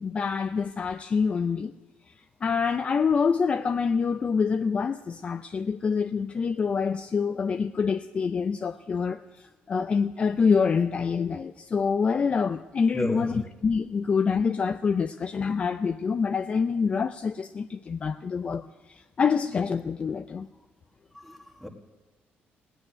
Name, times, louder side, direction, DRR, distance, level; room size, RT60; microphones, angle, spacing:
voice 1, 0.0-1.7 2.4-9.2 9.7-20.5, left 5 dB, 30° left, 0.4 m, -26 dB
voice 2, 12.9-13.4 21.1-21.7, left 1 dB, ahead, 1.7 m, -33 dB
17.5 x 8.2 x 9.9 m
cardioid pair, 150°, 4 cm